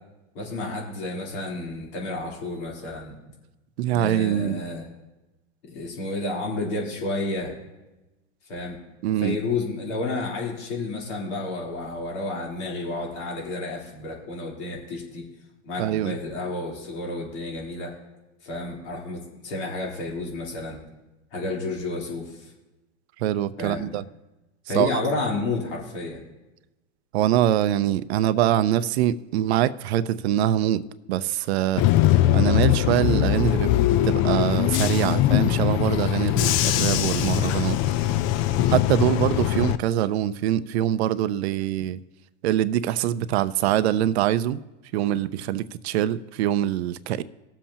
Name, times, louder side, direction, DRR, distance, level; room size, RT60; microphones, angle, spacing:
voice 1, 0.4-3.2 3.9-4.9 5.6-7.5 8.5-8.8 9.2-15.2 15.6-17.9 18.4-20.8 21.3-22.4 23.6-23.9 24.7-26.2 38.5-38.8, left 2 dB, 65° left, -2 dB, 3.6 m, -31 dB
voice 2, 3.8-4.6 9.0-9.4 15.8-16.2 23.2-24.0 24.7-24.9 27.1-31.8 32.3-33.7 34.0-37.8 38.7-42.0 42.4-44.6 44.9-47.2, right 12 dB, 60° right, 15 dB, 0.6 m, -24 dB
Bus / Engine, 31.8-39.8, left 13 dB, 35° left, 0.5 m, -21 dB
19.5 x 7.4 x 2.9 m, 1.0 s
hypercardioid pair, 110°, 36 cm